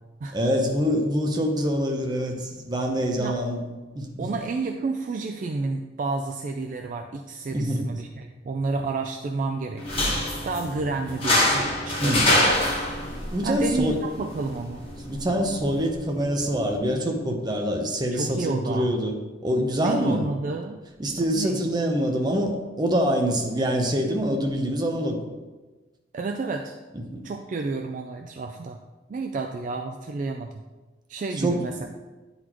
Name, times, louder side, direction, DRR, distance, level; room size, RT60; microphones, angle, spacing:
voice 1, 0.3-3.6 3.9-4.3 7.5-7.9 12.0-12.3 13.3-14.0 15.1-19.2 19.4-20.3 21.0-25.2 27.1-27.2 31.4-31.9, equal, 25° right, 2 dB, 0.7 m, -25 dB
voice 2, 4.2-10.2 10.4-12.4 13.4-14.8 18.1-18.9 19.8-20.8 21.2-21.6 26.1-26.8 27.2-28.8 29.1-30.6 31.1-31.9, right 3 dB, 45° right, 4 dB, 0.3 m, -30 dB
sound 1, 9.8-16.8, left 1 dB, 30° left, 1.4 m, -26 dB
9.3 x 4.1 x 3.0 m, 1.2 s
head